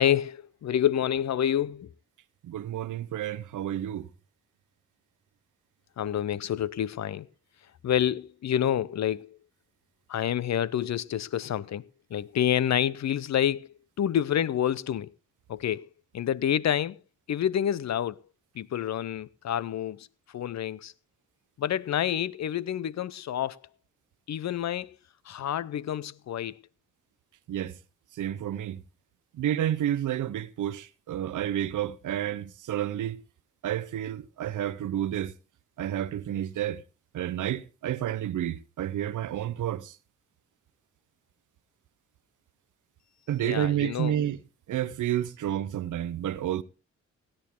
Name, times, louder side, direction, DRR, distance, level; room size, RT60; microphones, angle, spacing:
voice 1, 0.0-1.9 6.0-7.3 7.8-9.4 10.1-15.1 15.5-15.9 16.1-17.0 17.3-18.2 18.5-20.1 20.3-20.9 21.6-23.6 24.3-25.0 25.3-26.6 43.4-44.1, left 10 dB, 60° left, 0.6 m, -28 dB
voice 2, 2.4-4.1 27.5-27.8 28.2-28.8 29.4-33.2 33.6-35.3 35.8-36.8 37.1-40.0 43.3-44.4 44.7-46.6, right 11 dB, 80° right, 0.7 m, -30 dB
17.5 x 8.9 x 3.6 m
supercardioid pair, 50°, 31 cm